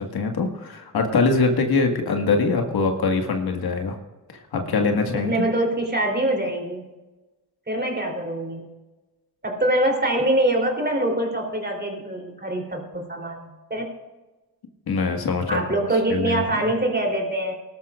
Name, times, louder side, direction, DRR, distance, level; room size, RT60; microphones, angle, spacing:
voice 1, 0.0-4.0 4.5-5.3 14.9-15.9 16.1-16.6, left 4 dB, 60° left, 3 dB, 1.8 m, -23 dB
voice 2, 5.1-6.9 7.7-8.7 9.4-13.9 15.5-17.5, right 1 dB, 25° right, 1 dB, 3.4 m, -24 dB
18.5 x 12.5 x 2.5 m, 1.1 s
supercardioid pair, 55°, 41 cm